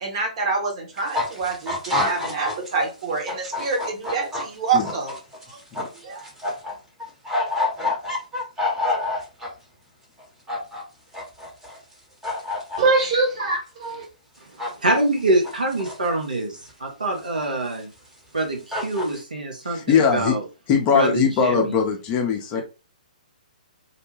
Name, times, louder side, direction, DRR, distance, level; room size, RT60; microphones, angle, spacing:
voice 1, 0.0-5.1 5.5-5.6 6.0-6.2 12.8-14.1, right 4 dB, 45° right, 1 dB, 1.0 m, -25 dB
sound 1, 1.0-2.7 3.0-6.7 7.0-9.5 10.2-10.8 11.1-11.9 12.2-12.8 14.6-15.0 15.2-16.1 16.7-16.8 17.7-17.8 18.4-18.5 18.7-19.2, left 2 dB, 10° right, 0.9 m, -27 dB
voice 2, 14.4-17.9 18.3-20.4 20.9-21.8, right 2 dB, 75° right, 1 dB, 0.9 m, -25 dB
voice 3, 19.6-20.3 20.7-22.6, left 7 dB, 25° left, 3 dB, 0.5 m, -21 dB
2.7 x 2.1 x 3.1 m, 0.31 s
figure-of-eight pair, 125°, 4 cm